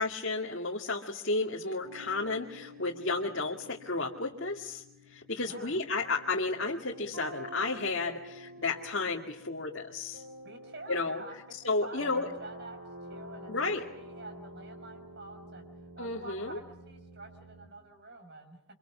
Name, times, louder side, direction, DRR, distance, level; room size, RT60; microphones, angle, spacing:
voice 1, 0.0-4.8 5.1-10.2 10.9-11.2 11.6-12.3 13.5-13.9 16.0-16.6, left 3 dB, 60° left, -1 dB, 2.1 m, -32 dB
sound 1, 1.8-17.7, equal, 70° right, 5.0 m, -49 dB
voice 2, 10.4-12.8 13.1-15.7 16.0-18.6, right 2 dB, 50° right, 6 dB, 5.9 m, -48 dB
29.0 x 25.5 x 6.2 m, 0.80 s
head